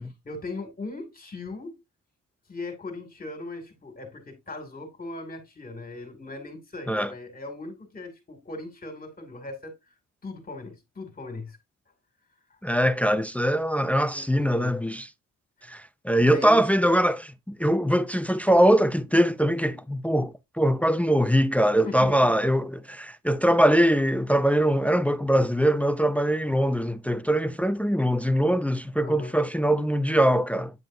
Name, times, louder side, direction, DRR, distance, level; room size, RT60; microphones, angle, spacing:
voice 1, 0.2-1.7 2.5-9.8 10.2-11.6 14.0-14.9 16.2-16.6 21.8-22.3 29.0-29.3, left 2 dB, 30° left, 2.5 m, -38 dB
voice 2, 12.6-15.1 15.7-30.7, equal, 5° left, 0.5 m, -22 dB
9.3 x 5.1 x 2.7 m
cardioid pair, 90°, 30 cm